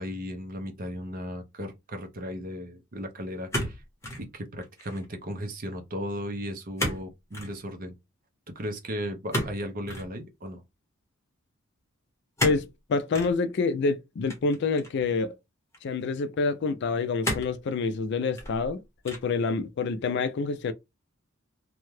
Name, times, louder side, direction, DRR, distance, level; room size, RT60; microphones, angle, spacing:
voice 1, 0.0-3.8 4.2-8.0 8.5-10.6, equal, 40° right, 0.7 m, -36 dB
sound 1, 3.5-4.3 4.6-5.1 6.8-7.1 7.3-7.6 9.3-10.1 12.4-12.7 13.1-13.3 14.3-15.0 15.7-15.8 17.2-17.6 18.2-18.7 19.0-19.4, left 1 dB, 15° left, 1.0 m, -32 dB
voice 2, 12.4-15.3 15.8-20.7, left 4 dB, 55° left, 0.4 m, -27 dB
2.7 x 2.3 x 3.1 m
head